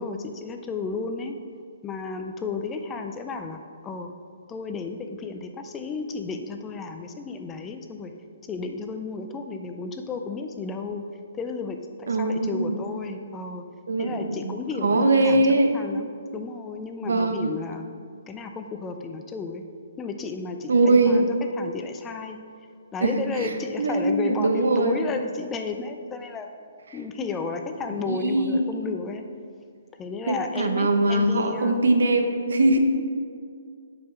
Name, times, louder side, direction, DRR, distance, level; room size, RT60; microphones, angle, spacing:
voice 1, 0.0-1.3 1.8-4.1 4.5-8.1 8.4-11.0 11.3-13.6 14.0-15.4 15.7-17.9 18.3-19.6 20.0-22.4 22.9-26.5 26.9-29.2 30.0-31.8, left 4 dB, 10° left, 5 dB, 0.3 m, -33 dB
voice 2, 12.1-12.8 13.9-14.5 14.8-15.7 17.0-17.4 20.7-21.3 23.0-23.5 23.8-25.0 28.1-28.8 30.3-32.8, right 2 dB, 75° right, 5 dB, 1.0 m, -21 dB
7.8 x 5.5 x 5.9 m, 2.2 s
hypercardioid pair, 175°, 0 cm